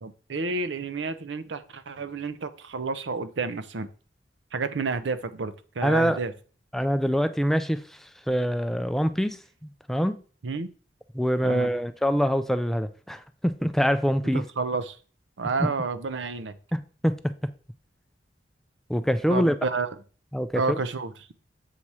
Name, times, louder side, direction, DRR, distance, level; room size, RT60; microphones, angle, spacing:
voice 1, 0.0-3.9 4.5-6.3 10.4-10.7 11.4-11.7 14.3-15.0 15.4-16.6 19.3-19.9 20.5-21.1, right 4 dB, 75° right, 0.6 m, -30 dB
voice 2, 5.8-6.2 6.7-10.2 11.1-14.4 15.6-15.7 16.7-17.3 18.9-19.6 20.3-20.8, equal, ahead, 0.3 m, -25 dB
7.3 x 4.2 x 4.7 m
head